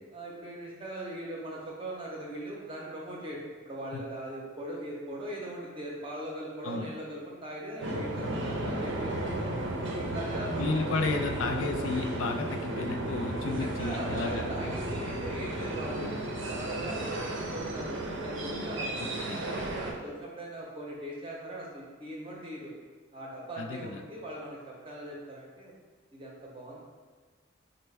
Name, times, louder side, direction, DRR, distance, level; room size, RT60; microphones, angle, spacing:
voice 1, 0.1-3.4 3.6-9.5 9.9-11.0 13.4-22.7 23.1-25.7 26.1-26.8, right 1 dB, 25° right, -4 dB, 0.6 m, -40 dB
sound 1, 7.8-19.9, right 1 dB, 70° right, 0.5 m, -34 dB
voice 2, 10.6-14.4 19.0-19.4 23.6-24.0, left 3 dB, 85° left, 3 dB, 0.4 m, -33 dB
4.3 x 2.1 x 3.2 m, 1.4 s
head